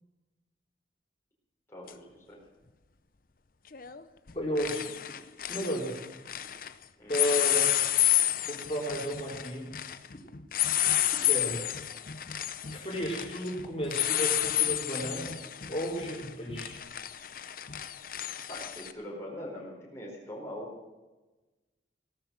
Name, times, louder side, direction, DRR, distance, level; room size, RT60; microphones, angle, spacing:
voice 1, 1.7-2.4 7.0-7.2 18.5-20.7, left 1 dB, 15° left, -4 dB, 4.5 m, -42 dB
sound 1, 1.9-2.0 3.7-4.0 4.3-6.7 7.1-18.9, left 12 dB, 50° left, 0.7 m, -30 dB
voice 2, 4.3-4.8 5.5-5.9 7.1-7.7 8.4-9.7 11.3-11.6 12.7-15.4 15.7-16.8, equal, 30° left, -4 dB, 4.4 m, -33 dB
17.0 x 13.0 x 6.3 m, 1.1 s
head